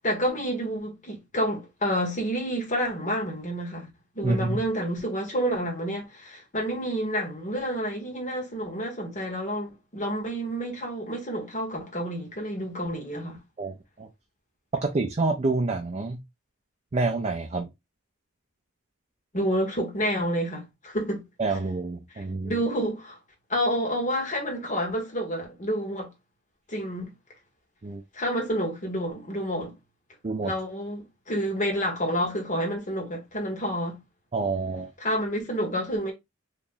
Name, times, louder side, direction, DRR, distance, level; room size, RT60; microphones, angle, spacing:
voice 1, 0.0-13.4 19.3-21.2 21.5-21.6 22.1-23.2 23.5-26.1 26.7-27.1 28.1-29.7 30.4-34.0 35.0-36.1, equal, 35° left, 1.5 m, -29 dB
voice 2, 4.2-4.6 13.6-14.1 14.7-16.2 16.9-17.7 21.4-22.5 27.8-28.0 30.2-30.5 34.3-34.9, right 3 dB, 30° right, 0.4 m, -27 dB
2.9 x 2.5 x 3.7 m
head